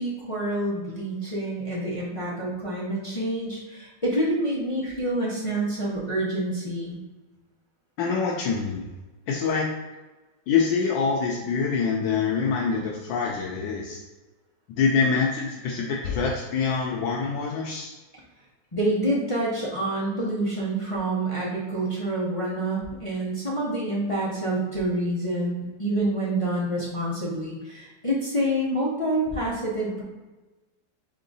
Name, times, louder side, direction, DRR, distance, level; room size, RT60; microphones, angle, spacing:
voice 1, 0.0-7.0 18.7-30.0, right 1 dB, 40° left, -7 dB, 0.4 m, -27 dB
voice 2, 8.0-8.9 9.3-9.7 10.5-14.0 14.8-17.9, left 5 dB, 85° left, -2 dB, 1.3 m, -25 dB
3.7 x 3.6 x 3.9 m, 1.2 s
omnidirectional pair, 2.0 m